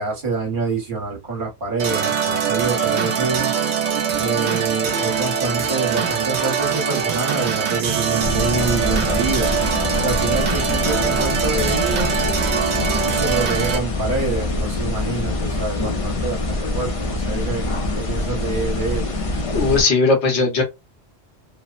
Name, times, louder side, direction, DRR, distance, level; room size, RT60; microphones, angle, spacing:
voice 1, 0.0-3.5 4.2-9.6 10.0-12.1 13.0-17.7 18.0-19.1, right 4 dB, 50° right, 1.3 m, -26 dB
sound 1, 1.8-13.8, right 7 dB, 75° right, 1.0 m, -22 dB
sound 2, 8.2-19.8, left 2 dB, 45° left, 0.5 m, -24 dB
voice 2, 19.5-20.6, left 3 dB, 80° left, 1.1 m, -17 dB
2.9 x 2.0 x 2.3 m
omnidirectional pair, 1.1 m